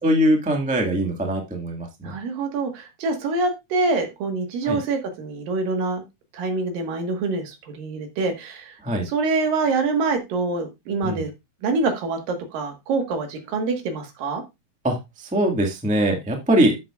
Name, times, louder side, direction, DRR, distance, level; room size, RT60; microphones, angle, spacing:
voice 1, 0.0-2.1 4.6-4.8 8.8-9.1 11.0-11.2 14.8-16.8, right 1 dB, 10° right, 2 dB, 0.5 m, -22 dB
voice 2, 2.0-6.0 6.3-8.8 9.0-11.3 11.6-14.4, right 3 dB, 75° right, 5 dB, 3.3 m, -25 dB
10.5 x 7.8 x 2.5 m, 0.22 s
omnidirectional pair, 4.0 m